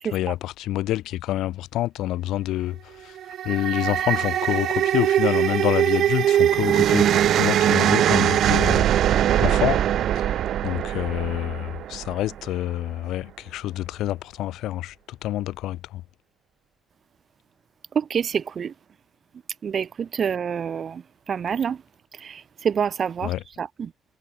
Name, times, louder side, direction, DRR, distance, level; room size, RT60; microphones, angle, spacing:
voice 1, 0.1-2.8 3.0-3.1 3.4-8.8 9.4-9.8 10.2-10.3 10.6-14.9 15.2-16.0 23.2-23.4, left 14 dB, 80° left, 4.0 m, -27 dB
sound 1, 3.2-12.5, right 11 dB, 60° right, 0.9 m, -21 dB
voice 2, 17.9-18.7 19.6-21.0 21.3-21.8 22.2-23.9, right 7 dB, 40° right, 0.5 m, -27 dB
cardioid pair, 140°, 0 cm